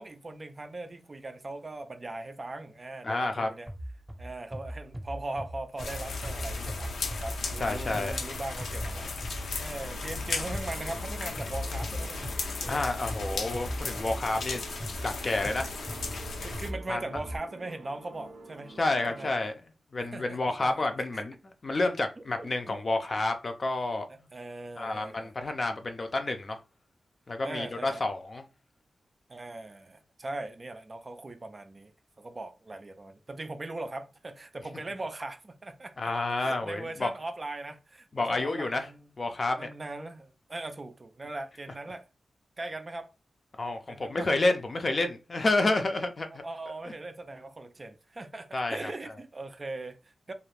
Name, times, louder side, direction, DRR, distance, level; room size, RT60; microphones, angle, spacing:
voice 1, 0.0-3.7 4.2-12.8 16.4-18.7 19.1-19.5 20.0-20.9 21.1-21.2 22.4-22.8 24.1-25.3 27.4-28.0 29.3-31.9 32.2-36.1 36.4-39.1 39.6-42.1 42.6-43.1 43.9-44.3 46.4-50.3, right 2 dB, 30° right, 0.3 m, -40 dB
voice 2, 3.0-3.5 7.6-8.2 12.7-14.6 15.0-15.7 16.9-17.0 18.8-19.5 19.9-24.1 24.8-26.6 27.3-28.4 36.0-37.1 38.1-38.9 39.2-39.7 43.6-46.4 48.5-48.9, left 2 dB, 40° left, 0.4 m, -29 dB
sound 1, 3.7-9.7 10.5-17.4, right 1 dB, 10° right, 0.8 m, -41 dB
sound 2, 5.8-16.7, left 3 dB, 90° left, 0.5 m, -36 dB
sound 3, 9.8-19.3, right 3 dB, 90° right, 0.6 m, -49 dB
2.5 x 2.4 x 3.2 m
wide cardioid pair, 110°, 0 cm